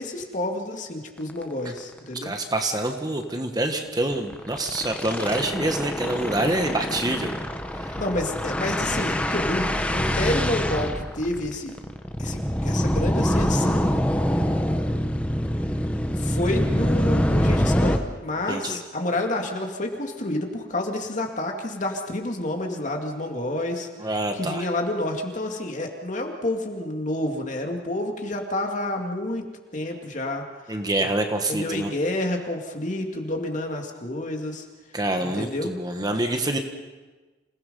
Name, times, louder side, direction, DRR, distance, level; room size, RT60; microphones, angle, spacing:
voice 1, 0.0-2.3 7.9-11.7 12.2-13.9 16.2-23.9 24.3-29.5 29.7-30.8 31.5-34.6 35.2-35.7, left 1 dB, 45° left, 3 dB, 2.3 m, -29 dB
sound 1, 1.3-1.4 1.8-1.9 2.2-2.3 2.6-2.8 4.1-18.0, equal, 10° left, 1.1 m, -25 dB
voice 2, 2.2-7.3 7.8-7.9 18.5-18.8 24.0-24.7 30.7-31.9 34.9-36.6, right 1 dB, 20° right, 5 dB, 1.4 m, -26 dB
27.0 x 17.5 x 5.5 m, 1.2 s
head